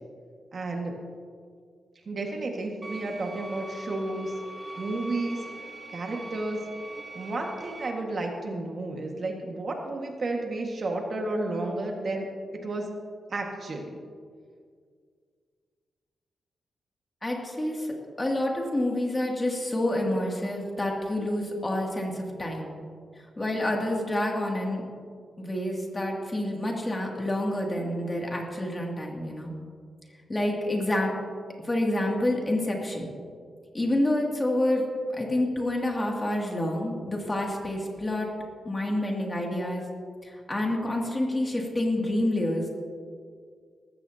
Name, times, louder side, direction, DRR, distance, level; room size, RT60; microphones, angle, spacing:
voice 1, 0.5-0.9 2.0-4.3 4.8-5.5 5.9-6.6 7.1-12.3 12.6-12.9 13.3-13.9, right 2 dB, 45° right, 1 dB, 1.7 m, -32 dB
sound 1, 2.8-7.9, right 1 dB, 15° right, 1.3 m, -42 dB
voice 2, 17.2-22.7 23.4-24.8 25.4-29.5 30.3-31.1 31.6-33.1 33.7-34.9 35.1-38.3 38.6-39.8 40.2-42.7, left 1 dB, 20° left, -1 dB, 2.5 m, -28 dB
19.5 x 15.5 x 2.9 m, 2.1 s
wide cardioid pair, 135°, 0 cm